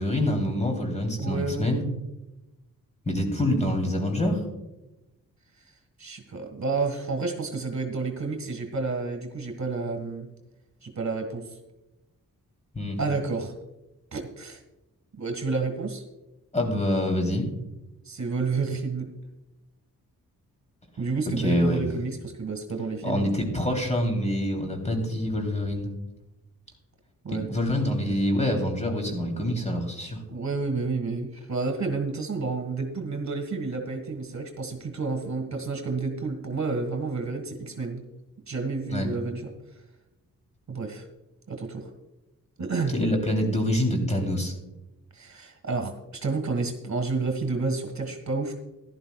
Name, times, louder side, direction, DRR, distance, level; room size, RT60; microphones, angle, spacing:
voice 1, 0.0-1.8 3.1-4.4 12.7-13.0 16.5-17.5 21.4-21.9 23.0-25.9 27.3-30.2 38.9-39.1 42.9-44.5, left 1 dB, 20° left, 2 dB, 3.1 m, -26 dB
voice 2, 1.2-1.7 6.0-10.3 10.8-11.4 13.0-13.5 14.1-14.6 15.2-16.0 18.0-19.1 21.0-23.3 27.2-27.6 30.3-38.0 38.5-39.5 40.7-41.1 41.5-41.9 42.6-42.9 45.1-48.5, right 4 dB, 50° right, 4 dB, 1.7 m, -30 dB
14.5 x 11.5 x 2.3 m, 0.98 s
cardioid pair, 55°, 35 cm